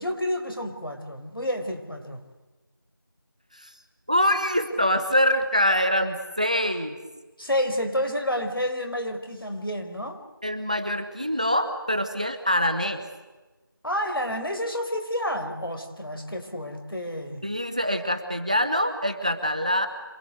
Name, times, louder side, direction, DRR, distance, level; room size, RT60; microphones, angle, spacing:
voice 1, 0.0-2.2 7.4-10.2 13.8-17.5, equal, 85° left, 4 dB, 5.2 m, -29 dB
voice 2, 4.1-7.0 10.4-13.0 17.4-19.9, equal, 20° right, 8 dB, 1.1 m, -24 dB
27.0 x 21.0 x 8.1 m, 1.2 s
figure-of-eight pair, 175°, 12 cm